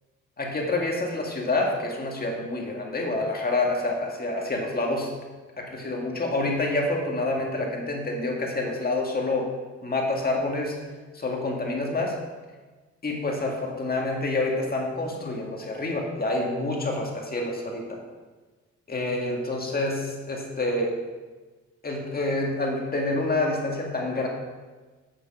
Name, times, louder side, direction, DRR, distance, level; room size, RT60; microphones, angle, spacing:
voice 1, 0.4-5.1 5.6-9.5 9.8-10.8 11.1-12.2 13.0-18.0 18.9-21.0 21.8-24.3, left 2 dB, 30° left, 0 dB, 1.9 m, -27 dB
8.2 x 6.4 x 6.3 m, 1.3 s
cardioid pair, 90°, 30 cm